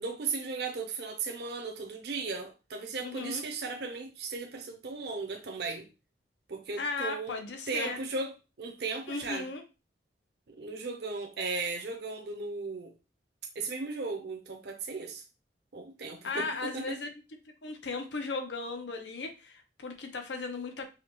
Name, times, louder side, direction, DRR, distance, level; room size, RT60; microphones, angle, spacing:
voice 1, 0.0-5.9 6.5-7.4 7.7-9.5 10.5-12.9 13.5-15.2 15.7-17.0, right 4 dB, 65° right, 0.6 m, -36 dB
voice 2, 3.0-3.4 6.8-8.0 9.1-9.6 16.2-17.2 17.6-20.9, left 3 dB, 85° left, 0.8 m, -36 dB
4.9 x 2.2 x 3.0 m
head